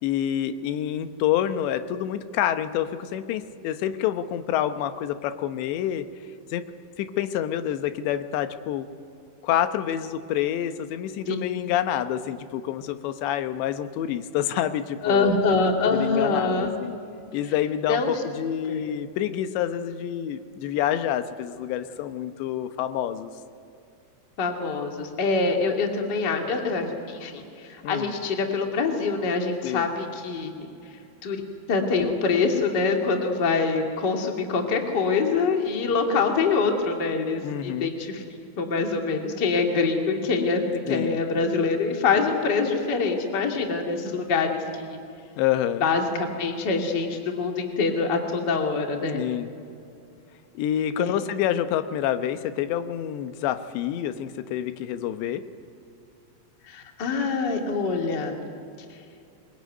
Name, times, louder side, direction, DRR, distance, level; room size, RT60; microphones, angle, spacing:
voice 1, 0.0-6.1 6.5-6.6 7.0-8.9 9.4-15.3 15.9-17.0 17.3-23.3 27.8-28.2 29.6-29.9 37.4-37.9 40.9-41.2 45.4-45.9 49.1-49.5 50.5-55.4, left 11 dB, 75° left, 9 dB, 3.2 m, -27 dB
voice 2, 15.0-16.7 17.9-18.1 18.7-18.8 24.4-30.5 31.2-31.4 31.7-38.2 38.6-45.0 45.8-49.2 51.0-51.1 56.7-58.3, left 4 dB, 30° left, 2 dB, 2.2 m, -25 dB
24.0 x 21.5 x 9.5 m, 2.5 s
omnidirectional pair, 5.3 m